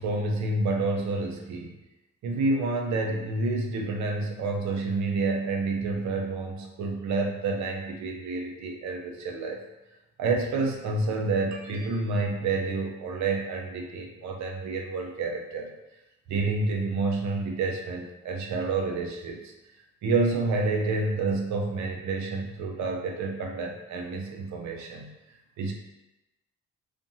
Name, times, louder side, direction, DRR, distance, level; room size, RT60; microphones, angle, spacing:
voice 1, 0.0-1.7 2.2-9.6 10.2-15.7 16.3-19.5 20.0-25.1 25.6-25.7, right 3 dB, 70° right, 1 dB, 0.6 m, -29 dB
2.6 x 2.5 x 2.7 m, 0.97 s
cardioid pair, 90°, 30 cm